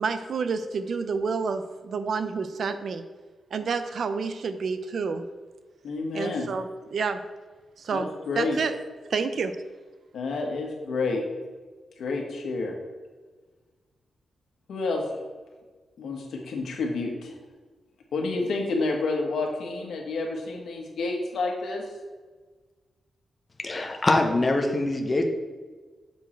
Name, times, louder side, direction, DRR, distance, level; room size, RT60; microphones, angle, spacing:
voice 1, 0.0-3.0 3.5-5.3 6.1-7.2 7.8-8.7 9.1-9.6, right 5 dB, 55° right, 10 dB, 0.4 m, -29 dB
voice 2, 5.8-6.5 7.9-8.6 10.1-11.2 12.0-12.8 14.7-15.1 16.0-17.3 18.1-21.8, left 3 dB, 80° left, 1 dB, 1.3 m, -29 dB
voice 3, 23.6-25.2, left 2 dB, 20° left, 3 dB, 0.7 m, -23 dB
7.0 x 4.6 x 4.5 m, 1.4 s
wide cardioid pair, 165°, 0 cm